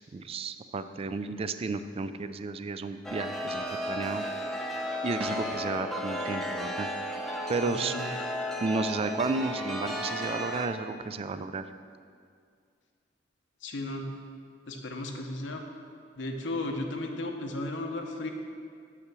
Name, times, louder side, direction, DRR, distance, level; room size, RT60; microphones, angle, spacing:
voice 1, 0.1-4.5 5.0-6.9 7.5-7.9 8.6-11.6, right 3 dB, 30° right, 11 dB, 0.3 m, -33 dB
Chime, 3.0-10.7, equal, ahead, 0.7 m, -34 dB
voice 2, 7.6-8.1 13.6-14.1 14.7-15.6 16.2-18.3, left 2 dB, 85° left, 3 dB, 0.9 m, -35 dB
6.7 x 5.7 x 6.1 m, 2.2 s
head